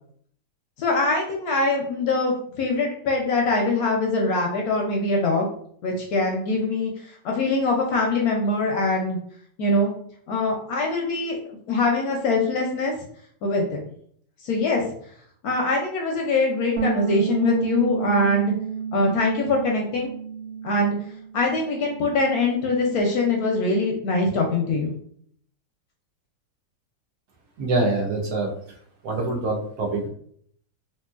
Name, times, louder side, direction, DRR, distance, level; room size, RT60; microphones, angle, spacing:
voice 1, 0.8-5.5 5.8-6.9 7.2-9.2 9.6-9.9 10.3-11.4 11.7-12.9 13.4-13.8 14.4-14.8 15.4-18.5 18.9-20.1 20.6-21.0 21.3-24.9, left 2 dB, 70° left, 0 dB, 0.9 m, -23 dB
sound 1, 16.8-21.3 21.6-23.0, right 6 dB, 55° right, 0.7 m, -31 dB
voice 2, 27.6-28.8 29.0-30.1, right 2 dB, 70° right, -1 dB, 1.1 m, -25 dB
2.9 x 2.9 x 2.3 m, 0.62 s
omnidirectional pair, 1.9 m